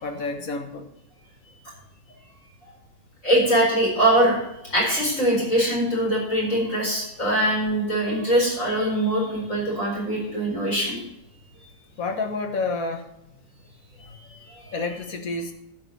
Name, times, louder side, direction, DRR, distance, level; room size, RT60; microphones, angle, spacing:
voice 1, 0.0-0.9 12.0-13.4 14.7-15.5, left 3 dB, 85° left, 5 dB, 1.8 m, -29 dB
voice 2, 3.2-4.4 4.6-11.0 14.0-14.7, right 1 dB, 65° left, -4 dB, 4.5 m, -23 dB
12.5 x 4.7 x 7.4 m, 0.88 s
omnidirectional pair, 1.4 m